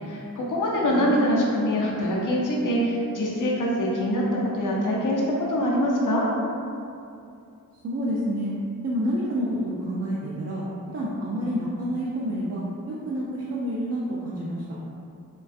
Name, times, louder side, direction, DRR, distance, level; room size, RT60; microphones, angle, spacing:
voice 1, 0.0-6.3, equal, 65° left, -4 dB, 0.6 m, -24 dB
voice 2, 0.8-1.5 7.8-8.5 8.8-14.6, equal, 45° right, -6 dB, 0.4 m, -29 dB
2.4 x 2.2 x 2.5 m, 2.5 s
cardioid pair, 40°, 34 cm